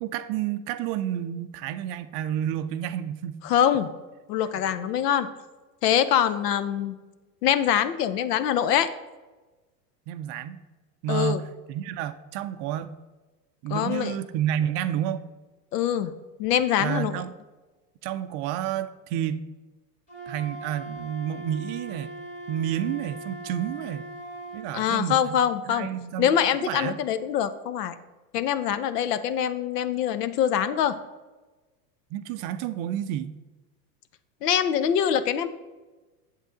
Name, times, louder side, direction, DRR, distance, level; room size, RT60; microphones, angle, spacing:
voice 1, 0.0-3.4 10.1-10.6 11.0-12.9 13.6-15.2 16.8-17.3 18.0-19.5 20.3-22.1 22.5-24.1 24.5-25.4 25.7-26.3 26.7-27.0 32.1-33.3, right 10 dB, 40° right, 11 dB, 0.5 m, -30 dB
voice 2, 3.4-3.9 4.3-5.3 5.8-6.9 7.4-8.9 11.1-11.4 13.7-14.2 15.7-16.1 16.4-17.2 24.7-25.9 26.2-27.9 28.3-30.9 34.4-35.5, left 9 dB, 70° left, 13 dB, 0.8 m, -24 dB
Wind instrument woodwind instrument, 20.1-24.7, right 1 dB, 15° left, 2.0 m, -40 dB
8.1 x 7.5 x 3.8 m, 1.2 s
hypercardioid pair, 95°, 50 cm